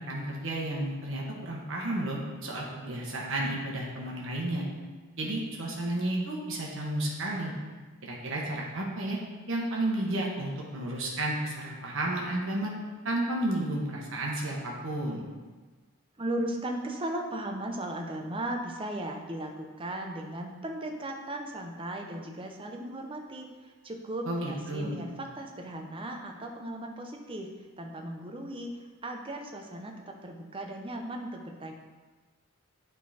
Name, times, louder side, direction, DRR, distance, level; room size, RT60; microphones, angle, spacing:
voice 1, 0.1-4.6 5.2-7.5 8.0-9.2 9.5-12.7 13.0-15.2 24.3-25.0, right 1 dB, 60° right, -2 dB, 1.2 m, -32 dB
voice 2, 16.2-27.5 27.8-31.7, right 1 dB, 25° right, 2 dB, 0.6 m, -37 dB
8.8 x 3.8 x 4.2 m, 1.3 s
head